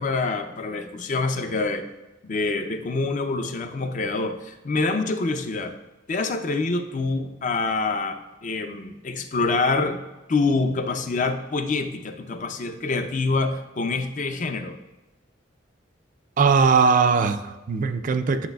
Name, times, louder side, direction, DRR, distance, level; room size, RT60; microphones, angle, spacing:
voice 1, 0.0-1.9 2.2-5.8 6.1-10.0 10.3-14.8, left 3 dB, 40° left, 0.5 m, -26 dB
voice 2, 16.4-18.5, right 5 dB, 45° right, 0.4 m, -20 dB
10.0 x 6.1 x 2.3 m
head